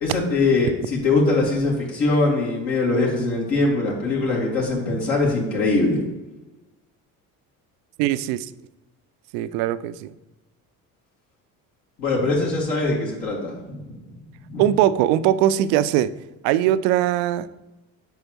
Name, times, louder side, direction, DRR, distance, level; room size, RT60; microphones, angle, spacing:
voice 1, 0.0-6.0 12.0-14.1 14.5-14.6, left 3 dB, 65° left, -4 dB, 2.2 m, -22 dB
voice 2, 8.0-8.5 9.3-10.1 14.6-16.1 16.4-17.5, right 12 dB, 60° right, 14 dB, 0.5 m, -20 dB
9.1 x 5.0 x 3.0 m, 1.0 s
figure-of-eight pair, 55°, 47 cm